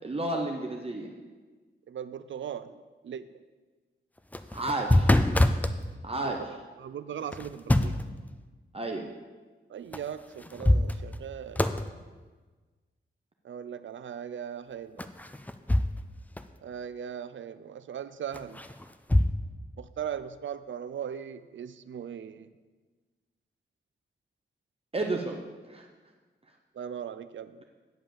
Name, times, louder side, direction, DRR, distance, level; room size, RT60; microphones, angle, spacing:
voice 1, 0.0-1.1 4.5-5.1 6.0-6.5 8.7-9.1 24.9-25.4 25.7-25.9, right 2 dB, 30° right, 1 dB, 0.8 m, -31 dB
voice 2, 1.9-2.8 3.0-3.3 6.1-6.2 6.8-8.0 9.7-11.7 13.4-15.1 16.6-18.6 19.8-22.5 26.7-27.6, right 8 dB, 70° right, 13 dB, 0.5 m, -38 dB
sound 1, 4.2-5.8 7.3-8.1 9.9-10.0 10.4-11.3 11.6-11.9 15.0-16.1 16.4-16.5 18.3-19.3, left 1 dB, 10° left, 0.4 m, -25 dB
8.9 x 5.5 x 7.0 m, 1.3 s
wide cardioid pair, 115°, 20 cm